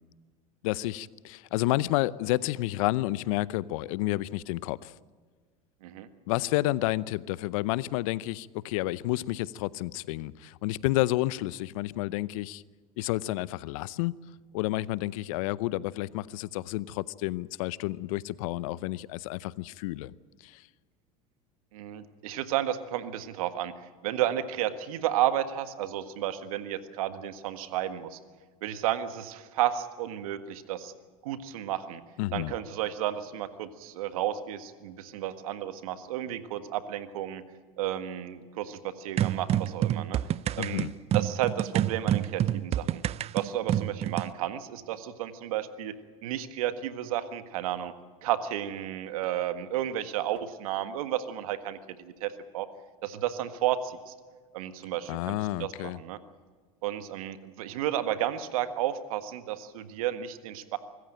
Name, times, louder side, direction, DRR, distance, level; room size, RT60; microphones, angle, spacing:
voice 1, 0.6-4.9 6.3-12.6 13.0-14.1 14.5-20.1 20.4-20.7 32.2-32.5 40.6-40.9 55.1-56.0, left 17 dB, 70° left, 0.7 m, -30 dB
voice 2, 21.7-23.7 24.0-28.2 28.6-30.9 31.2-32.0 32.3-37.4 37.8-40.2 40.6-40.9 41.1-43.0 43.3-47.9 48.2-52.7 53.0-54.1 54.5-56.2 56.8-60.8, right 12 dB, 75° right, 1.6 m, -32 dB
sound 1, 39.2-44.3, right 11 dB, 35° right, 0.5 m, -28 dB
25.0 x 14.5 x 9.0 m
hypercardioid pair, 95°, 18 cm